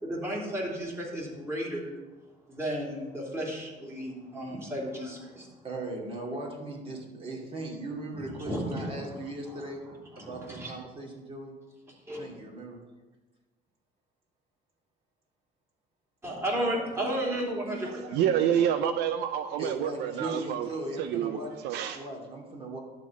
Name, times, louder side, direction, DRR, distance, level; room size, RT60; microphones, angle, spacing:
voice 1, 0.0-1.9 2.5-5.5 8.1-9.2 9.5-10.7 12.1-12.2 16.2-18.4, right 1 dB, 15° right, 3.1 m, -34 dB
voice 2, 5.6-9.8 10.2-11.5 12.2-12.8 18.6-18.7 19.6-21.5 21.9-22.8, right 2 dB, 35° right, 2.6 m, -38 dB
voice 3, 17.9-20.7 21.0-21.4 21.6-22.0, right 9 dB, 85° right, 0.5 m, -28 dB
11.5 x 4.0 x 7.3 m
cardioid pair, 110°, 17 cm